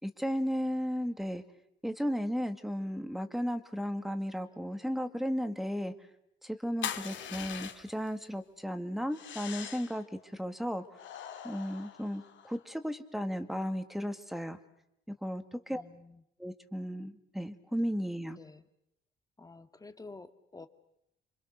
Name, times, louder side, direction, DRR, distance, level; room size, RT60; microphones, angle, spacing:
voice 1, 0.0-1.4 1.8-5.9 6.4-10.0 10.3-10.8 11.4-14.6 15.2-15.8 16.4-18.4, equal, ahead, 9 dB, 2.1 m, -34 dB
sound 1, 6.8-8.1 9.1-10.0 10.9-12.6, left 9 dB, 70° left, 2.6 m, -41 dB
voice 2, 15.7-16.2 18.3-18.6 19.4-20.7, left 3 dB, 20° left, 9 dB, 2.0 m, -50 dB
28.5 x 25.0 x 6.7 m, 0.81 s
cardioid pair, 90°, 20 cm